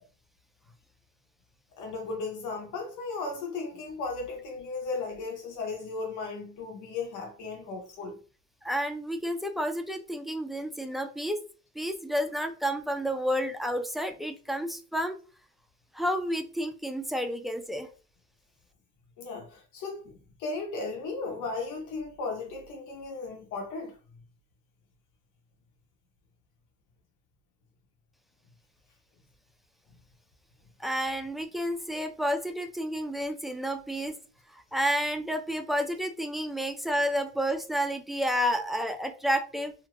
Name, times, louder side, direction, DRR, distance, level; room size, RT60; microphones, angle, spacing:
voice 1, 1.8-8.2 19.2-24.0, left 3 dB, 85° left, 0.9 m, -36 dB
voice 2, 8.6-11.4 11.8-15.2 15.9-17.9 30.8-34.2 34.5-39.7, equal, ahead, 0.4 m, -30 dB
2.7 x 2.5 x 3.0 m
cardioid pair, 110°, 30 cm